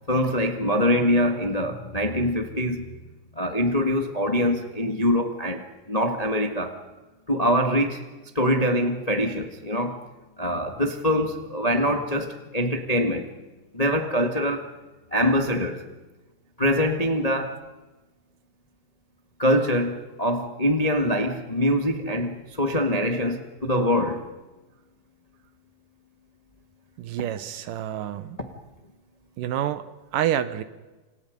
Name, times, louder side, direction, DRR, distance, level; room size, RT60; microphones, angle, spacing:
voice 1, 0.1-2.8 3.3-6.8 7.3-8.0 8.3-10.0 10.4-13.3 13.7-14.7 15.1-15.8 16.6-17.6 19.4-24.3, equal, 25° left, 0.8 m, -24 dB
voice 2, 27.0-28.4 29.4-29.8 30.1-30.6, right 11 dB, 75° right, 2.5 m, -28 dB
29.0 x 27.5 x 5.3 m
omnidirectional pair, 4.1 m